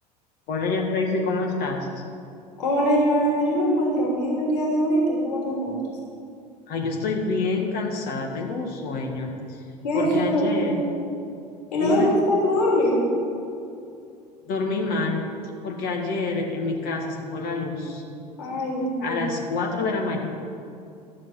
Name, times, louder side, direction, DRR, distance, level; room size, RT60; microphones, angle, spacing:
voice 1, 0.5-2.0 6.7-9.6 9.9-10.7 11.8-12.1 14.5-15.3 15.6-18.0 19.0-20.2, left 3 dB, 45° left, 0 dB, 1.9 m, -27 dB
voice 2, 2.6-5.8 9.8-10.8 11.7-13.1 18.4-19.2, equal, 70° left, -4 dB, 3.3 m, -22 dB
13.0 x 7.4 x 6.0 m, 2.5 s
figure-of-eight pair, 75°, 21 cm